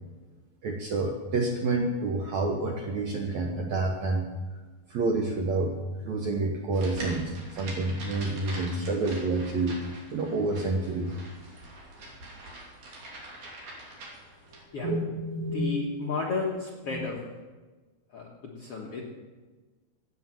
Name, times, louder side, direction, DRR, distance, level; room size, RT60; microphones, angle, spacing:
voice 1, 0.6-4.3 4.9-5.8 6.0-9.8 10.1-11.1 14.8-15.8 16.9-17.0, right 2 dB, 65° right, 1 dB, 1.8 m, -28 dB
sound 1, 6.7-14.6, right 1 dB, 50° right, 4.0 m, -43 dB
voice 2, 15.5-17.2 18.1-19.0, left 4 dB, 60° left, -2 dB, 1.6 m, -32 dB
13.5 x 8.9 x 7.6 m, 1.3 s
omnidirectional pair, 4.6 m